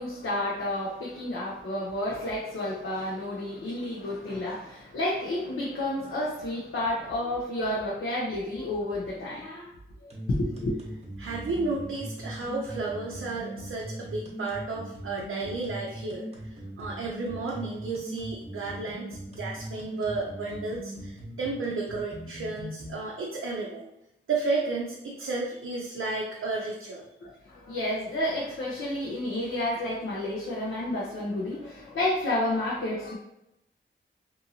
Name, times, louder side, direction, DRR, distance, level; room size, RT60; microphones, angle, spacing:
voice 1, 0.0-10.8 27.2-33.2, left 1 dB, 85° left, -5 dB, 0.6 m, -31 dB
sound 1, 10.1-22.9, right 1 dB, 30° right, 0.9 m, -40 dB
voice 2, 11.2-23.9 24.3-27.1, right 3 dB, 80° right, -2 dB, 0.5 m, -33 dB
2.6 x 2.6 x 2.8 m, 0.85 s
wide cardioid pair, 70°, 21 cm